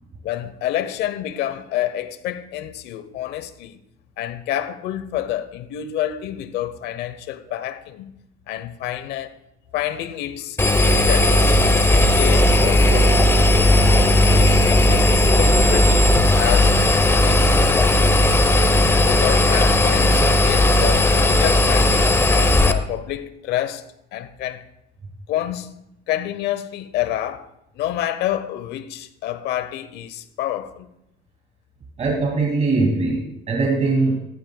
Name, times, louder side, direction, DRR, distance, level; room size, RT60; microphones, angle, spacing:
voice 1, 0.2-3.8 4.2-8.1 8.5-9.3 9.7-13.4 14.3-16.8 17.2-17.6 17.8-18.2 19.0-23.9 24.1-24.6 25.3-25.8 26.1-27.5 27.7-30.9, left 12 dB, 85° left, 0.9 m, -28 dB
Engine, 10.6-22.7, left 1 dB, 15° left, 0.9 m, -16 dB
voice 2, 32.0-34.2, right 3 dB, 40° right, 2.3 m, -21 dB
15.0 x 14.0 x 2.3 m
cardioid pair, 110°, 17 cm